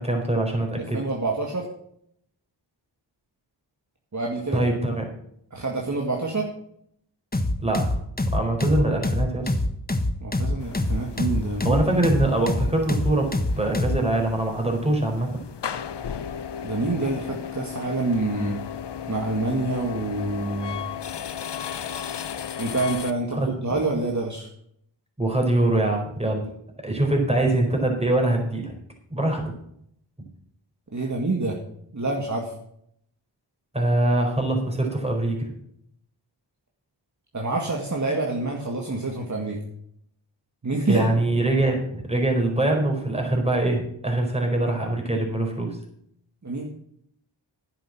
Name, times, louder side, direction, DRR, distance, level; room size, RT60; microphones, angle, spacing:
voice 1, 0.0-1.0 4.5-5.0 7.6-7.8 8.3-9.5 11.6-13.3 13.6-15.4 23.4-23.5 25.2-26.5 26.8-28.7 29.1-29.4 33.7-35.5 40.9-45.8, right 1 dB, 15° right, 1 dB, 4.3 m, -23 dB
voice 2, 0.9-1.7 4.1-4.6 5.5-6.5 10.2-11.8 16.6-18.6 19.1-20.8 22.6-24.5 30.9-31.6 31.9-32.5 37.3-39.6 40.6-41.1 46.4-46.7, right 2 dB, 40° right, 0 dB, 2.0 m, -27 dB
sound 1, 7.3-14.0, left 1 dB, 20° left, 1.3 m, -25 dB
sound 2, 10.6-23.1, left 8 dB, 60° left, 0.8 m, -35 dB
10.0 x 7.9 x 7.3 m, 0.72 s
cardioid pair, 45°, 46 cm